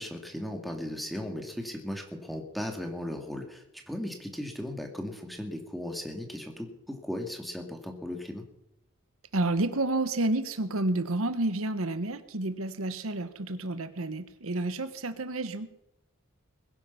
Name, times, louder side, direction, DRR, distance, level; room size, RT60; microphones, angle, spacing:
voice 1, 0.0-8.4, left 1 dB, ahead, 3 dB, 2.4 m, -37 dB
voice 2, 9.3-15.8, right 2 dB, 90° right, 11 dB, 1.3 m, -30 dB
21.0 x 10.5 x 5.9 m, 0.83 s
head